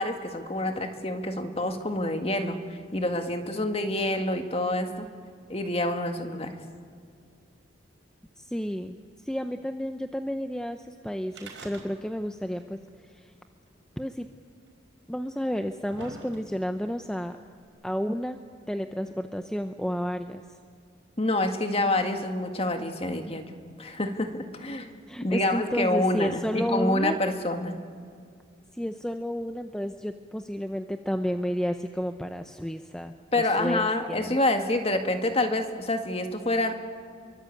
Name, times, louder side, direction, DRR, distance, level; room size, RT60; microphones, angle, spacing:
voice 1, 0.0-5.1 5.5-6.5 21.2-23.5 23.8-24.9 25.2-27.7 33.3-36.7, left 1 dB, 30° left, 6 dB, 1.9 m, -27 dB
voice 2, 8.4-9.0 9.3-12.8 13.1-13.3 14.0-14.3 15.1-17.4 17.8-18.4 18.7-20.4 25.1-27.2 28.7-34.4, equal, 5° left, 7 dB, 0.6 m, -31 dB
sound 1, 11.3-12.3 12.6-12.7 13.7-13.8 14.7-14.8 15.4-16.8 17.6-17.7, right 3 dB, 65° right, 5.0 m, -44 dB
28.0 x 23.5 x 8.6 m, 2.3 s
head